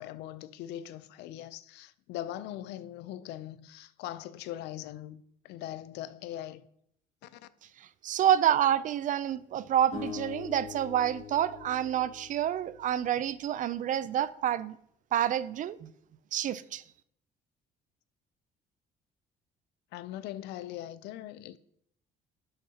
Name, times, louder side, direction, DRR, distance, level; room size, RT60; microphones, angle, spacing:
voice 1, 0.0-6.6 7.2-7.5 19.9-21.6, left 12 dB, 85° left, 0.5 m, -41 dB
voice 2, 8.0-14.8 15.1-15.9 16.3-16.8, right 10 dB, 50° right, 0.4 m, -28 dB
sound 1, 9.9-13.1, left 7 dB, 45° left, 2.8 m, -43 dB
11.5 x 6.5 x 2.8 m
cardioid pair, 110°, 17 cm